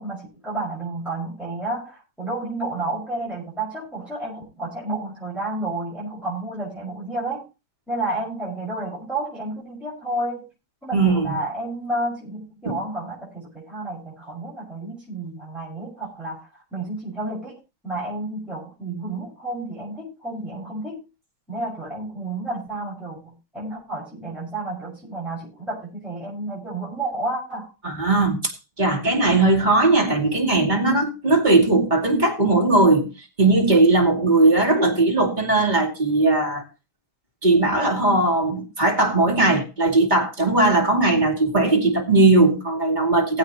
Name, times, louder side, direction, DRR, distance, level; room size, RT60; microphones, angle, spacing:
voice 1, 0.0-7.4 7.9-10.4 10.8-17.6 17.8-21.0 21.5-27.7, right 2 dB, ahead, 5.9 m, -31 dB
voice 2, 10.9-11.4 12.6-12.8 27.8-33.1 33.4-36.6 37.4-43.4, right 2 dB, 20° right, 2.5 m, -19 dB
20.5 x 8.1 x 2.9 m
omnidirectional pair, 2.3 m